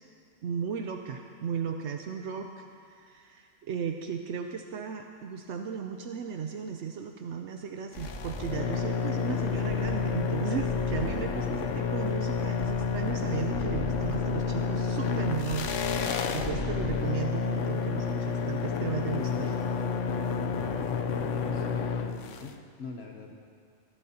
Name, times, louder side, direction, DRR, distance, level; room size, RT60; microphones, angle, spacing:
voice 1, 0.4-15.8 16.3-19.6, right 7 dB, 75° right, 4 dB, 0.9 m, -35 dB
sound 1, 7.9-22.5, left 6 dB, 85° left, 1.0 m, -30 dB
sound 2, 8.0-16.9, equal, 25° left, 2.2 m, -41 dB
voice 2, 21.1-23.4, left 4 dB, 65° left, 2 dB, 1.0 m, -44 dB
20.5 x 11.5 x 2.8 m, 2.3 s
omnidirectional pair, 1.2 m